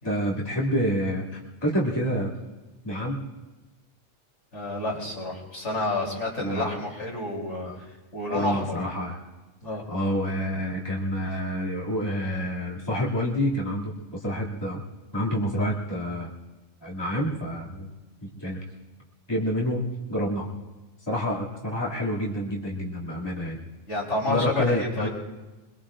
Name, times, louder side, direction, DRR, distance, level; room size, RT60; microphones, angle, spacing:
voice 1, 0.0-2.3 2.8-3.2 6.4-6.8 7.6-7.8 8.3-9.2 9.9-14.8 15.1-16.3 16.8-17.9 18.2-18.6 19.3-20.5 21.1-23.6 24.3-25.1, equal, 20° left, -5 dB, 2.6 m, -28 dB
voice 2, 4.5-7.7 8.1-8.7 9.6-9.8 23.9-25.1, left 2 dB, 85° left, -3 dB, 3.9 m, -29 dB
25.0 x 22.0 x 2.5 m, 1.1 s
omnidirectional pair, 1.2 m